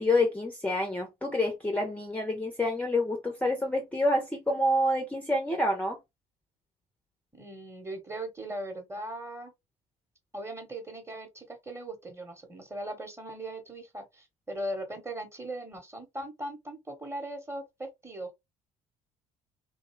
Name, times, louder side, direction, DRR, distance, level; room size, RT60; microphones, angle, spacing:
voice 1, 0.0-6.0, left 1 dB, 10° left, 0.7 m, -27 dB
voice 2, 7.3-9.5 10.3-18.4, right 1 dB, 15° right, 1.1 m, -39 dB
2.6 x 2.3 x 3.0 m
hypercardioid pair, 55°, 19 cm